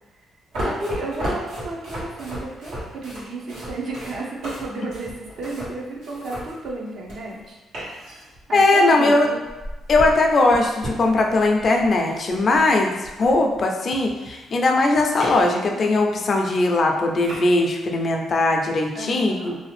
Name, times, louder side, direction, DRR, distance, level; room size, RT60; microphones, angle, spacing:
sound 1, 0.5-7.4 7.7-8.7 9.4-13.6 13.9-15.6 16.0-16.1 16.7-16.8 17.1-17.4, equal, 90° right, 1.3 m, -34 dB
voice 1, 0.6-7.6 8.5-9.4 15.7-15.9 18.9-19.6, right 2 dB, 60° right, -2 dB, 0.7 m, -32 dB
voice 2, 8.5-9.3 9.9-19.5, left 2 dB, 45° left, 2 dB, 0.5 m, -19 dB
2.7 x 2.4 x 3.2 m, 1.1 s
cardioid pair, 90°, 0 cm